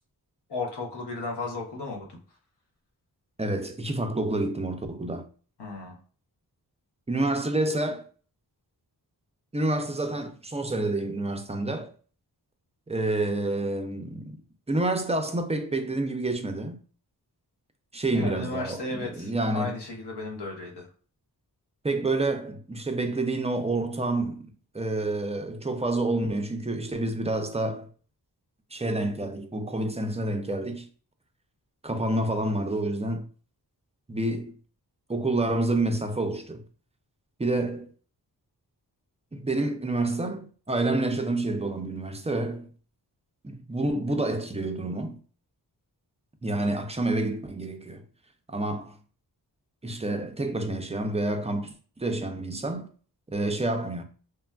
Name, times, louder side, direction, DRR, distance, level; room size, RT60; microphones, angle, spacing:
voice 1, 0.5-2.2 5.6-6.0 18.1-20.9, left 3 dB, 85° left, 0.9 m, -34 dB
voice 2, 3.4-5.3 7.1-8.0 9.5-11.9 12.9-14.4 14.7-16.8 17.9-19.8 21.8-27.9 28.7-30.9 31.8-33.3 34.1-34.5 35.1-36.6 37.4-37.9 39.3-42.7 43.4-45.2 46.4-48.0 48.5-49.0 49.8-52.9 53.3-54.0, right 2 dB, 20° right, 0.3 m, -28 dB
3.2 x 2.3 x 2.2 m
wide cardioid pair, 85°, 39 cm